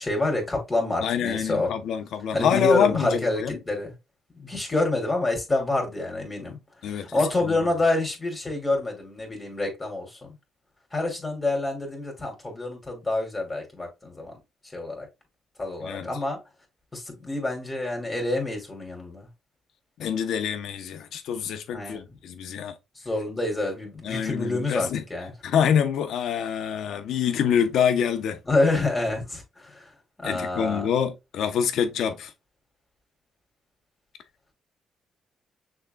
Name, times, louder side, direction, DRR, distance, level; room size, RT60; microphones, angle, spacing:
voice 1, 0.0-1.7 2.3-3.9 4.4-6.6 6.9-10.2 10.9-14.4 14.7-15.1 15.6-16.4 16.9-19.3 21.7-22.1 23.0-25.3 28.5-29.9 30.2-30.9, left 2 dB, 20° left, 2.6 m, -27 dB
voice 2, 1.0-3.6 6.8-7.7 15.8-16.1 20.0-22.7 24.0-25.0 25.4-28.4 30.2-32.3, left 8 dB, 75° left, 0.8 m, -26 dB
6.4 x 3.7 x 2.3 m
cardioid pair, 90°, 0 cm